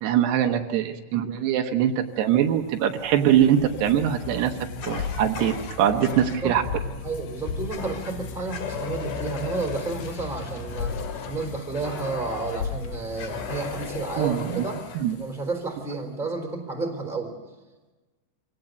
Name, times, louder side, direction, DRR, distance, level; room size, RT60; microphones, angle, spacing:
voice 1, 0.0-4.5 4.8-6.6 14.2-14.6 15.0-15.1, right 10 dB, 80° right, 5 dB, 3.1 m, -22 dB
sound 1, 2.2-15.6, left 5 dB, 70° left, 1.7 m, -36 dB
Fire, 4.8-6.4 7.7-8.2 8.5-12.6 13.2-15.0, left 6 dB, 55° left, 3.0 m, -37 dB
voice 2, 6.1-6.6 7.0-11.0 11.3-14.8 15.1-17.4, right 3 dB, ahead, 3 dB, 3.2 m, -31 dB
25.5 x 18.0 x 8.0 m, 1.2 s
omnidirectional pair, 4.9 m